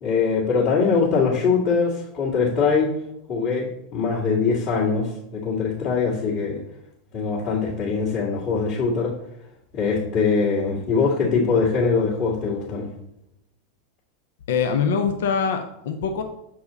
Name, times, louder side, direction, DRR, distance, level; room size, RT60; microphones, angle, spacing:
voice 1, 0.0-2.9 3.3-6.6 7.1-9.1 9.7-12.9, left 5 dB, 45° left, -8 dB, 2.2 m, -22 dB
voice 2, 14.5-16.2, left 6 dB, 60° left, 6 dB, 0.7 m, -23 dB
7.4 x 4.7 x 4.1 m, 0.80 s
figure-of-eight pair, 85°, 0 cm